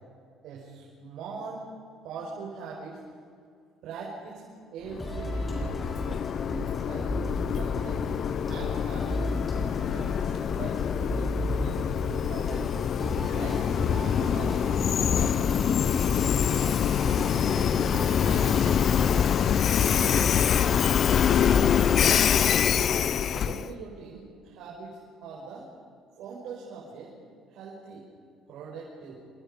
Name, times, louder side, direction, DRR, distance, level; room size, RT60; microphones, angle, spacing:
voice 1, 0.4-1.6 2.0-3.0 3.8-6.1 6.3-7.1 7.5-8.0 8.5-9.4 9.9-11.9 12.3-12.9 13.3-13.7 13.9-14.6 15.1-15.9 16.2-16.9 17.3-17.9 18.2-19.3 21.3-21.8 22.6-22.9 23.3-25.7 26.2-27.1 27.5-28.1 28.5-29.2, right 4 dB, 70° right, -4 dB, 6.1 m, -42 dB
Train, 4.9-23.7, left 8 dB, 45° left, 0.7 m, -25 dB
sound 1, 5.0-20.8, equal, 5° left, 5.7 m, -35 dB
28.5 x 26.5 x 5.5 m, 2.3 s
cardioid pair, 140°, 0 cm